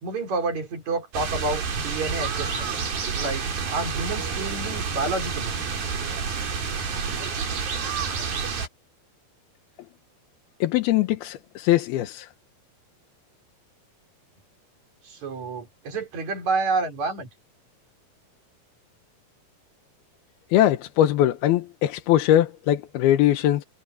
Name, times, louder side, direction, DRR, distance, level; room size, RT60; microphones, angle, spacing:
voice 1, 0.0-2.8 3.1-5.5 15.0-17.3, right 3 dB, 50° right, 4.9 m, -29 dB
sound 1, 1.1-8.7, right 5 dB, 75° right, 5.9 m, -29 dB
voice 2, 10.6-12.3 20.5-23.6, left 13 dB, 90° left, 3.1 m, -21 dB
omnidirectional pair, 4.3 m